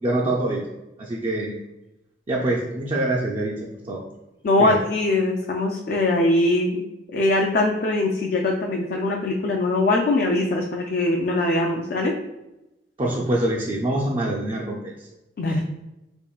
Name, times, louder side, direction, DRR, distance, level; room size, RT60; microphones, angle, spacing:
voice 1, 0.0-0.6 1.0-1.6 2.3-4.0 4.6-4.8 13.0-15.1 15.5-15.6, right 1 dB, 30° right, -3 dB, 0.4 m, -25 dB
voice 2, 4.4-6.8 7.1-12.1 15.4-15.6, left 2 dB, 55° left, 1 dB, 0.4 m, -22 dB
3.7 x 3.5 x 2.3 m, 0.96 s
head